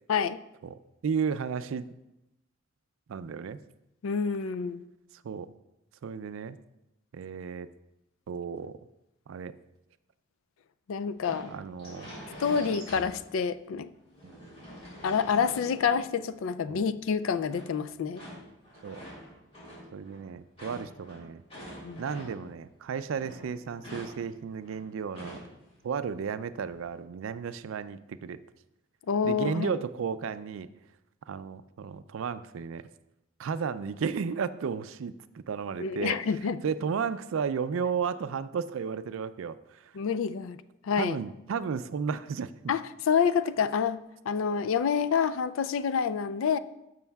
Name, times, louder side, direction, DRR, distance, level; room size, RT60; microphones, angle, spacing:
voice 1, 0.6-1.9 3.1-3.6 5.2-5.5 6.0-6.6 7.1-7.7 8.3-8.8 9.3-9.6 11.5-12.2 14.2-14.5 16.7-16.9 18.8-19.0 19.9-21.4 22.0-25.5 25.8-28.4 29.2-30.7 31.3-32.9 33.4-36.2 36.6-39.9 41.0-42.7, right 6 dB, 75° right, 14 dB, 0.4 m, -33 dB
voice 2, 4.0-4.8 10.9-11.5 12.4-13.9 15.0-18.2 21.8-22.0 29.1-29.8 35.8-36.6 39.9-40.6 40.8-41.2 42.7-46.6, left 6 dB, 75° left, 14 dB, 0.3 m, -28 dB
sound 1, 11.2-13.5 13.9-16.5 17.5-22.6 22.9-25.7 26.0-26.1 26.6-27.0, equal, 30° left, 3.1 m, -46 dB
12.5 x 6.2 x 2.3 m, 0.90 s
head